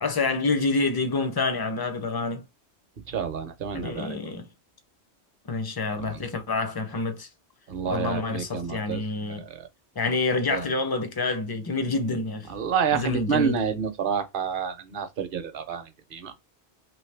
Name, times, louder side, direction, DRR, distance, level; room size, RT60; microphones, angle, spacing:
voice 1, 0.0-2.4 3.7-4.5 5.5-7.3 7.9-9.4 10.0-12.5 12.9-13.6, left 3 dB, 30° left, 0.4 m, -27 dB
voice 2, 3.1-4.2 6.1-6.2 7.7-9.0 9.3-9.7 10.5-10.6 12.5-15.8 16.1-16.3, right 7 dB, 55° right, 0.8 m, -29 dB
3.1 x 2.9 x 3.2 m
omnidirectional pair, 1.2 m